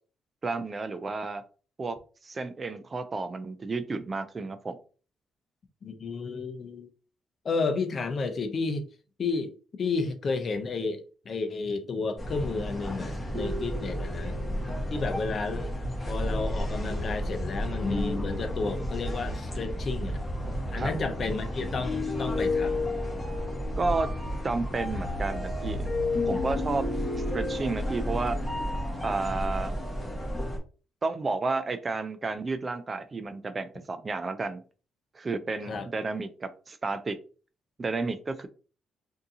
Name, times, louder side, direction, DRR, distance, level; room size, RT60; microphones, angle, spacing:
voice 1, 0.4-1.4 1.8-2.0 2.2-4.8 20.7-20.9 23.8-24.1 24.4-25.9 26.3-26.8 27.3-28.4 29.0-29.8 31.0-34.6 35.1-37.2 37.8-38.5, right 3 dB, 30° right, 0.4 m, -31 dB
voice 2, 5.8-6.9 7.4-8.9 9.2-14.4 14.9-15.7 16.1-20.2 20.7-22.8 35.7-35.9, left 4 dB, 45° left, 0.6 m, -32 dB
sound 1, 12.2-30.6, left 1 dB, 15° left, 1.3 m, -31 dB
3.6 x 2.7 x 2.7 m
cardioid pair, 90°, 0 cm